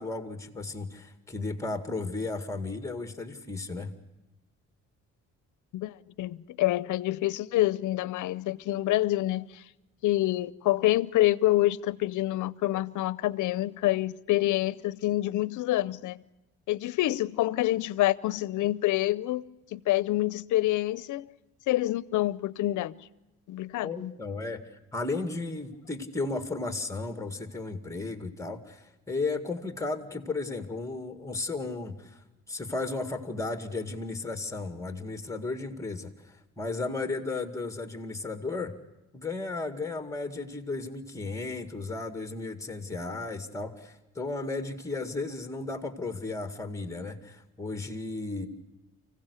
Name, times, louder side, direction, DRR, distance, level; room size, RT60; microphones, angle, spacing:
voice 1, 0.0-3.9 23.8-32.2 32.5-38.7 39.1-48.5, left 3 dB, 10° left, 2.1 m, -34 dB
voice 2, 5.7-9.6 10.0-16.2 16.7-19.4 19.7-21.3 21.7-22.9 23.5-24.1, left 16 dB, 80° left, 0.7 m, -27 dB
25.0 x 16.0 x 8.2 m
cardioid pair, 90°, 30 cm